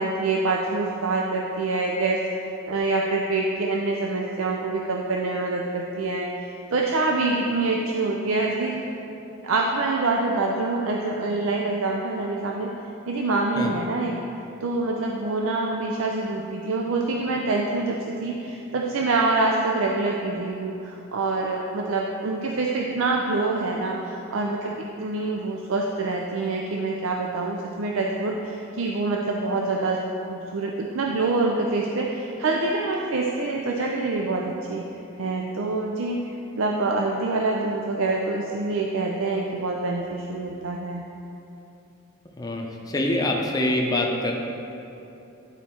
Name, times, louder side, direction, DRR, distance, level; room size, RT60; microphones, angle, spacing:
voice 1, 0.0-8.9 9.4-12.7 13.1-14.1 14.6-30.0 30.3-34.9 35.2-36.2 36.6-41.1, right 3 dB, 70° right, 0 dB, 0.5 m, -26 dB
voice 2, 42.4-44.3, left 1 dB, 20° left, 0 dB, 0.7 m, -25 dB
10.5 x 4.2 x 4.4 m, 2.9 s
head